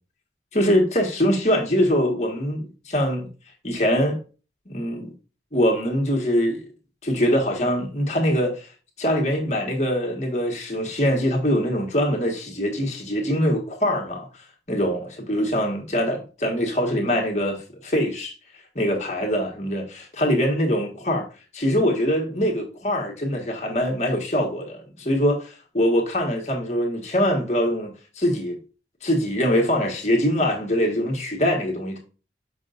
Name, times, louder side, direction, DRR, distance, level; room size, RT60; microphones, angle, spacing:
voice 1, 0.5-3.3 3.6-4.2 4.6-5.1 5.5-6.6 7.0-8.7 9.0-14.3 14.7-18.3 18.7-21.3 21.5-28.6 29.0-32.0, equal, 40° left, 1.7 m, -23 dB
7.4 x 5.4 x 2.6 m
head